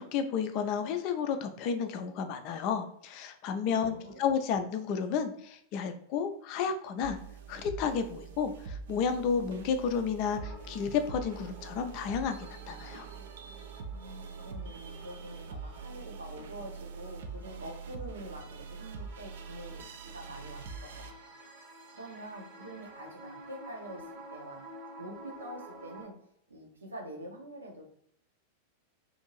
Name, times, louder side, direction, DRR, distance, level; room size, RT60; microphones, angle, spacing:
voice 1, 0.0-7.2 7.5-13.1, left 6 dB, 45° left, 7 dB, 0.4 m, -32 dB
voice 2, 3.7-4.3 13.9-19.8 20.1-21.1 21.9-24.0 24.3-24.6 25.0-26.1 26.5-27.8, right 1 dB, 75° right, 1 dB, 0.7 m, -46 dB
sound 1, 7.0-21.1, right 5 dB, 60° right, 0.3 m, -44 dB
sound 2, 10.3-26.1, right 1 dB, 35° right, 0.7 m, -51 dB
2.6 x 2.6 x 2.9 m, 0.71 s
figure-of-eight pair, 90°, 0 cm